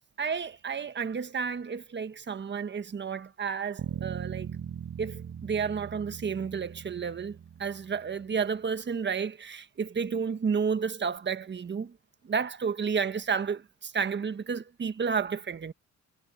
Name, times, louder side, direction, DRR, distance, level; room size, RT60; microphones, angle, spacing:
voice 1, 0.2-4.5 5.0-12.0 12.2-15.7, right 6 dB, 35° right, 1.4 m, -31 dB
Bass guitar, 3.8-8.2, right 8 dB, 55° right, 4.3 m, -40 dB
cardioid pair, 90°, 30 cm